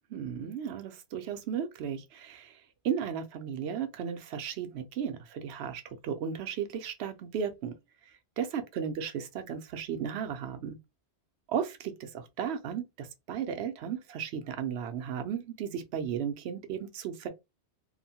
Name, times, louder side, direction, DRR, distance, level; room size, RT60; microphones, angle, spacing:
voice 1, 0.1-7.8 8.1-10.8 11.5-17.3, right 8 dB, 70° right, 0.8 m, -35 dB
2.9 x 2.1 x 2.7 m
omnidirectional pair, 1.1 m